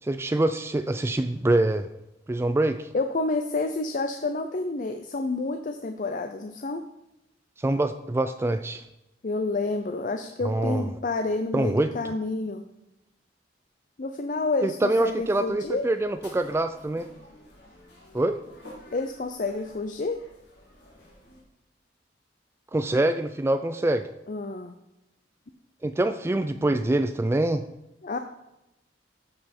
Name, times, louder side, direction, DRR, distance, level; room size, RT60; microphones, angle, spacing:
voice 1, 0.0-1.9 2.3-2.9 7.6-8.8 10.4-10.9 11.5-11.9 14.6-17.1 18.1-18.4 22.7-24.1 25.8-27.6, right 1 dB, 15° right, 10 dB, 0.3 m, -25 dB
voice 2, 2.9-6.8 9.2-12.6 14.0-15.9 18.9-20.2 24.3-24.7 28.0-28.2, left 3 dB, 45° left, 6 dB, 0.5 m, -29 dB
sound 1, 14.8-21.4, left 1 dB, 70° left, 2.9 m, -51 dB
13.5 x 5.4 x 4.3 m, 0.90 s
head